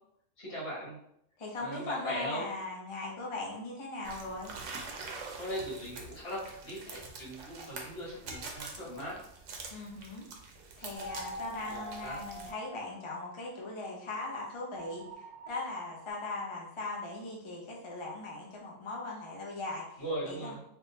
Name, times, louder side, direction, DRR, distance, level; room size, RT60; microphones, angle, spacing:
voice 1, 0.4-1.0 1.6-2.5 5.4-9.2 11.7-12.2 20.0-20.6, equal, 55° left, -7 dB, 1.7 m, -39 dB
voice 2, 1.4-4.5 9.7-10.3 10.8-20.5, left 2 dB, 35° left, -2 dB, 0.5 m, -39 dB
sound 1, 4.0-12.5, right 4 dB, 80° right, 0.9 m, -45 dB
sound 2, 10.9-13.5 14.7-16.1, right 1 dB, 45° right, 0.7 m, -45 dB
3.5 x 2.7 x 2.7 m, 0.72 s
omnidirectional pair, 1.3 m